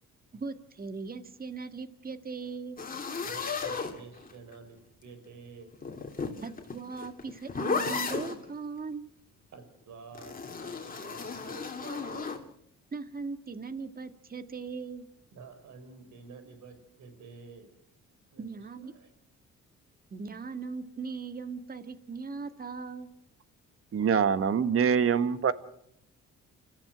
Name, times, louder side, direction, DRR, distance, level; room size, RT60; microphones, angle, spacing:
voice 1, 0.3-2.8 6.4-9.1 12.9-15.1 18.4-18.9 20.1-23.1, right 4 dB, 30° right, 10 dB, 1.7 m, -39 dB
sound 1, 2.8-4.5 5.7-8.4 10.1-12.4, left 4 dB, 30° left, 3.2 m, -34 dB
voice 2, 3.2-5.8 9.5-12.5 15.3-17.7 18.3-18.5 18.8-19.1, right 5 dB, 70° right, 9 dB, 4.9 m, -50 dB
voice 3, 23.9-25.5, right 7 dB, 50° right, 13 dB, 1.5 m, -24 dB
30.0 x 14.5 x 6.1 m, 0.73 s
cardioid pair, 90°, 30 cm